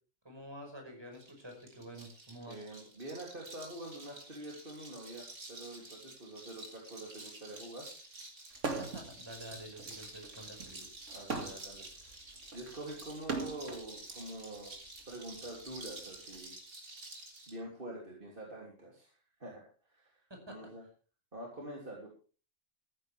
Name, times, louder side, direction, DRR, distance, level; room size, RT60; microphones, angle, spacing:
voice 1, 0.2-2.6 8.8-10.9 20.3-20.7, equal, 20° right, 2 dB, 5.5 m, -49 dB
sound 1, 1.1-17.6, right 2 dB, 85° right, 3.9 m, -50 dB
voice 2, 2.5-7.9 11.1-11.9 12.5-14.7 15.1-16.5 17.5-19.6 19.9-20.2 20.5-20.8 21.3-22.1, right 1 dB, 40° right, -2 dB, 3.4 m, -46 dB
sound 2, 8.5-9.1 9.5-13.9 14.7-16.4, right 3 dB, 65° right, 2.6 m, -40 dB
15.0 x 14.5 x 3.5 m, 0.38 s
omnidirectional pair, 1.4 m